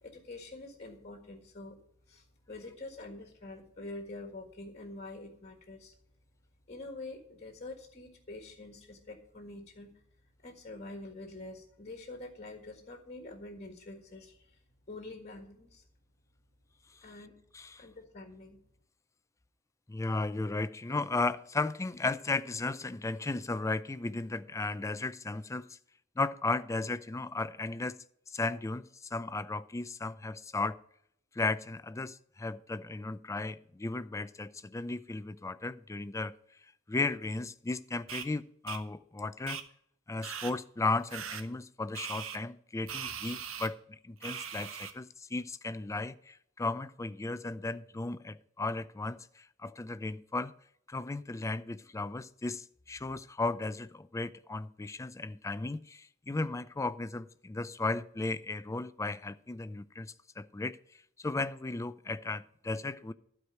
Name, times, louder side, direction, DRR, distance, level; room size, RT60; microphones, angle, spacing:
voice 1, 0.0-1.8 2.1-5.9 6.7-10.0 10.4-14.6 14.9-15.8 17.0-17.4 17.8-18.6, left 2 dB, 35° left, 1.7 m, -46 dB
voice 2, 19.9-25.8 26.2-30.8 31.3-36.3 36.9-39.6 40.1-50.5 50.9-60.8 61.2-63.1, left 3 dB, 15° left, 0.4 m, -35 dB
sound 1, 38.1-38.3 38.7-38.8 39.5-39.6 40.2-40.5 41.1-41.4 41.9-42.4 42.9-43.7 44.2-44.9, right 8 dB, 85° right, 1.0 m, -40 dB
12.0 x 4.8 x 7.8 m
head